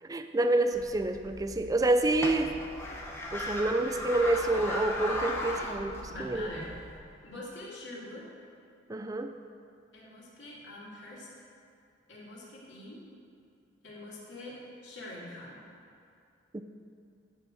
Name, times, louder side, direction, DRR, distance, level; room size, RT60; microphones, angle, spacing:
voice 1, 0.1-2.6 3.3-6.5 8.9-9.3 16.5-16.6, right 2 dB, 20° right, 8 dB, 0.4 m, -28 dB
sound 1, 0.7-7.0, left 1 dB, 15° left, 0.9 m, -37 dB
voice 2, 6.1-6.8 7.2-8.3 9.9-11.3 12.1-13.0 13.8-15.6, left 1 dB, 70° left, -6 dB, 2.4 m, -44 dB
11.0 x 4.7 x 6.1 m, 2.5 s
head